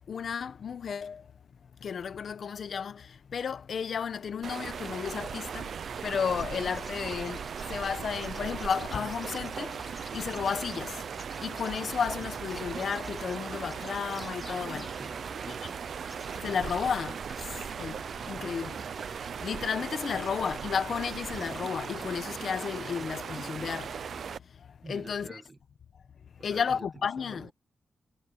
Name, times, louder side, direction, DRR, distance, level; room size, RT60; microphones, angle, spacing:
voice 1, 0.1-1.2 1.8-5.8 6.0-11.0 11.4-15.0 15.5-15.6 16.4-18.0 18.3-18.8 19.0-19.1 19.4-24.0 24.9-25.4 26.4-27.5, left 6 dB, 65° left, 1.1 m, -33 dB
sound 1, 3.2-3.3 4.0-17.6 18.0-18.1, equal, 5° left, 3.1 m, -57 dB
sound 2, 4.4-24.4, right 7 dB, 70° right, 0.5 m, -38 dB
Bird vocalization bird call bird song, 6.2-23.0, left 2 dB, 25° left, 5.0 m, -54 dB
voice 2, 14.9-15.9 24.8-25.6 26.4-27.5, right 3 dB, 25° right, 1.5 m, -48 dB
wide cardioid pair, 135°, 0 cm